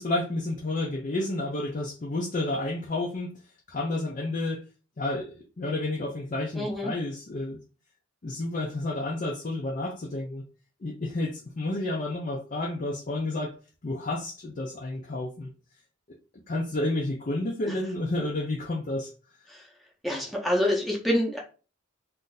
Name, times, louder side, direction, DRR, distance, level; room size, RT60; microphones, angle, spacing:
voice 1, 0.0-3.3 3.7-4.6 5.0-7.6 8.2-10.4 10.8-13.5 13.8-15.5 16.5-19.1, left 2 dB, 40° left, 0 dB, 0.5 m, -30 dB
voice 2, 6.5-6.9 17.7-17.8 19.5-19.6 20.0-21.4, left 1 dB, ahead, -1 dB, 0.7 m, -26 dB
2.6 x 2.5 x 3.8 m, 0.35 s
head